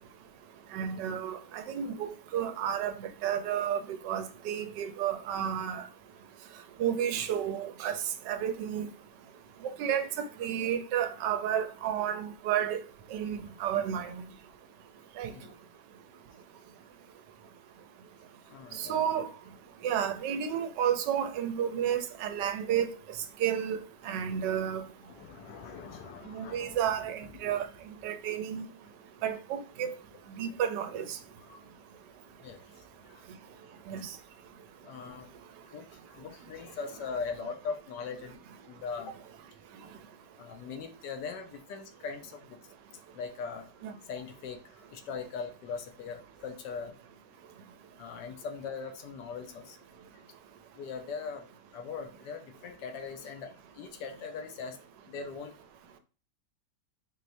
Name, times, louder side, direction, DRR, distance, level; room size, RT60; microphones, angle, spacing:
voice 1, 0.7-5.8 6.8-8.9 9.6-12.8 13.1-14.2 15.2-15.3 18.8-19.3 19.8-22.9 23.4-23.8 24.0-24.8 26.3-27.7 28.0-28.7 29.2-29.9 30.3-31.2 33.9-34.1 43.8-43.9, right 9 dB, 80° right, 1.2 m, -31 dB
voice 2, 18.4-19.0 24.2-24.5 25.1-26.8 27.2-27.6 31.4-31.6 32.4-34.1 34.8-35.3 35.6-39.1 40.4-42.6 43.1-43.7 44.0-47.0 48.0-49.8 50.1-50.2 50.7-54.8 55.0-55.5, left 5 dB, 80° left, 1.3 m, -41 dB
4.5 x 3.1 x 2.6 m
omnidirectional pair, 1.9 m